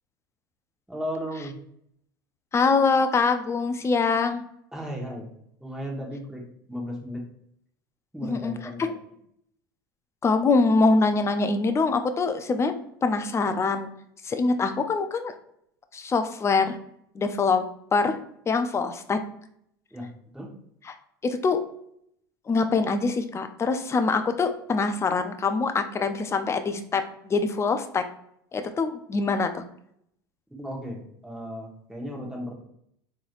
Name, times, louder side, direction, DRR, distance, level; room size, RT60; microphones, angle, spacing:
voice 1, 0.9-1.5 4.7-5.3 5.6-7.2 8.1-9.0 19.9-20.1 20.3-20.5 30.5-32.5, equal, 5° right, -2 dB, 1.2 m, -35 dB
voice 2, 2.5-4.4 8.2-8.5 10.2-12.8 13.0-13.9 14.2-15.3 15.9-16.8 17.1-17.7 17.9-18.2 18.5-19.2 21.2-21.6 22.5-28.0 28.5-29.6, left 4 dB, 25° left, 8 dB, 0.5 m, -24 dB
3.8 x 3.1 x 2.4 m, 0.71 s
hypercardioid pair, 85°, 12 cm